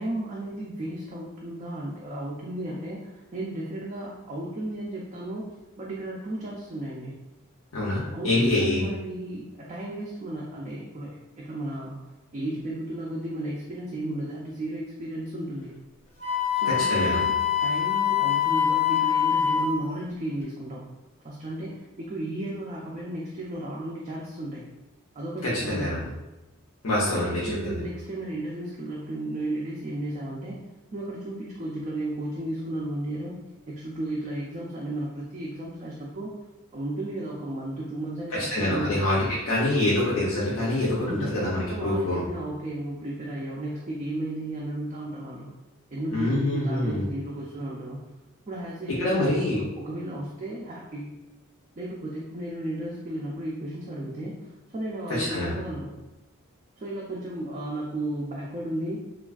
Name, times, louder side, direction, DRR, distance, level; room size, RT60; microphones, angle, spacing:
voice 1, 0.0-7.2 8.1-12.0 12.3-15.7 16.5-20.8 21.2-24.6 25.1-26.1 27.1-30.6 30.9-33.4 33.7-36.3 36.7-39.1 41.0-45.5 45.9-48.0 48.5-51.1 51.8-55.9 56.8-59.0, right 1 dB, 30° right, -4 dB, 0.3 m, -34 dB
voice 2, 7.7-8.8 16.7-17.2 25.4-26.0 26.8-27.8 38.3-42.2 46.1-47.0 49.0-49.6 55.1-55.5, left 1 dB, 75° left, -7 dB, 0.6 m, -25 dB
Wind instrument woodwind instrument, 16.2-19.8, left 8 dB, 30° left, 0.5 m, -24 dB
3.3 x 2.3 x 2.3 m, 1.0 s
head